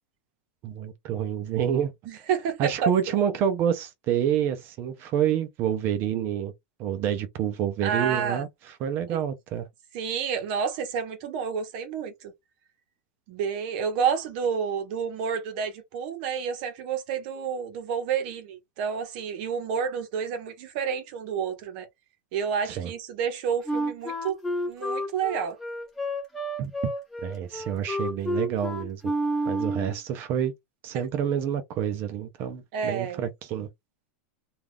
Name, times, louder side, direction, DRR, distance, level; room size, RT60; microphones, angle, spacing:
voice 1, 0.6-1.9 2.6-6.5 6.8-8.5 8.8-9.7 22.6-22.9 26.6-26.7 27.2-29.0 29.5-30.5 30.8-33.7, right 9 dB, 35° right, 0.4 m, -28 dB
voice 2, 2.1-2.9 7.8-8.5 9.1-9.2 9.9-12.3 13.3-21.9 22.3-24.4 24.7-25.6 32.7-33.2, right 7 dB, 50° right, 0.8 m, -29 dB
Wind instrument woodwind instrument, 23.7-30.0, equal, 5° left, 1.0 m, -30 dB
2.3 x 2.3 x 3.3 m
supercardioid pair, 160°, 7 cm